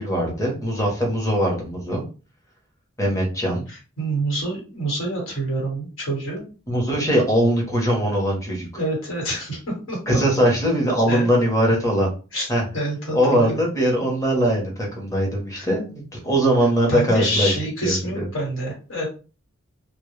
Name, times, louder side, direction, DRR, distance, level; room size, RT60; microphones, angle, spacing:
voice 1, 0.0-2.0 3.0-3.6 6.7-8.7 10.1-12.1 12.5-12.6 13.1-17.6 17.8-18.3, equal, 15° left, -1 dB, 0.7 m, -21 dB
voice 2, 3.7-6.4 8.8-10.0 11.1-11.3 12.3-12.5 12.7-13.6 15.5-15.7 16.9-19.1, right 1 dB, 70° left, -3 dB, 1.3 m, -27 dB
2.1 x 2.0 x 3.0 m, 0.34 s
head